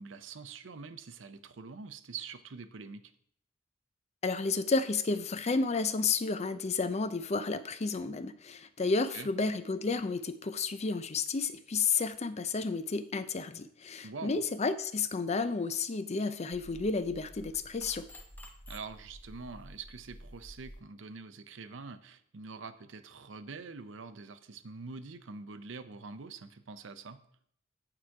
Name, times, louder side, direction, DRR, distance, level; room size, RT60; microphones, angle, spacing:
voice 1, 0.0-3.1 9.1-9.3 14.0-14.4 18.7-27.2, right 4 dB, 80° right, 11 dB, 0.6 m, -45 dB
voice 2, 4.2-18.1, left 4 dB, 35° left, 12 dB, 0.5 m, -31 dB
sound 1, 16.5-20.8, equal, 10° left, 0.9 m, -50 dB
8.9 x 4.9 x 4.7 m, 0.66 s
head